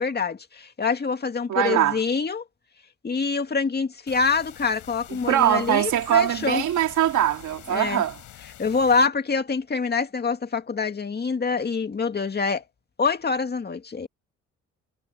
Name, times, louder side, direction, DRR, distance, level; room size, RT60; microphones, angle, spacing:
voice 1, 0.0-2.4 3.0-6.6 7.7-8.0 8.6-12.6 13.0-14.1, left 5 dB, 35° left, 2.2 m, -25 dB
voice 2, 1.5-2.0 5.1-8.2, right 11 dB, 75° right, 2.7 m, -22 dB
sound 1, 4.1-9.1, left 13 dB, 85° left, 7.8 m, -46 dB
cardioid pair, 90°, 30 cm